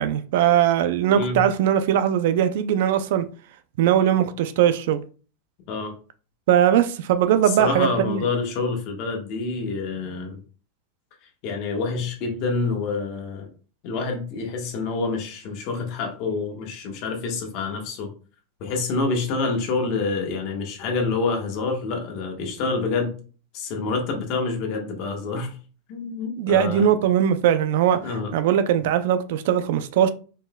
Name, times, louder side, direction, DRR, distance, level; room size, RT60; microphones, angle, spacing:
voice 1, 0.0-3.3 3.8-5.0 6.5-8.2 26.4-30.1, right 10 dB, 65° right, 0.4 m, -20 dB
voice 2, 7.5-10.4 11.4-13.5 13.8-18.1 18.6-23.2 23.5-25.6 25.9-26.9 28.0-28.3, left 4 dB, 45° left, 1.3 m, -27 dB
4.3 x 3.8 x 2.3 m
supercardioid pair, 150°, 0 cm